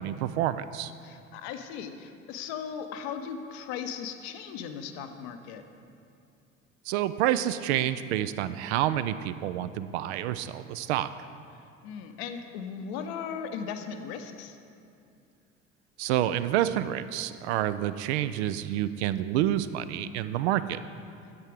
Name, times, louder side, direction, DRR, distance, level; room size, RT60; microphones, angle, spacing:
voice 1, 0.0-0.9 6.9-11.1 16.0-20.8, right 12 dB, 60° right, 13 dB, 0.5 m, -28 dB
voice 2, 1.0-5.6 11.5-14.6, left 7 dB, 55° left, 7 dB, 0.8 m, -38 dB
9.7 x 7.5 x 5.0 m, 2.5 s
figure-of-eight pair, 65°, 39 cm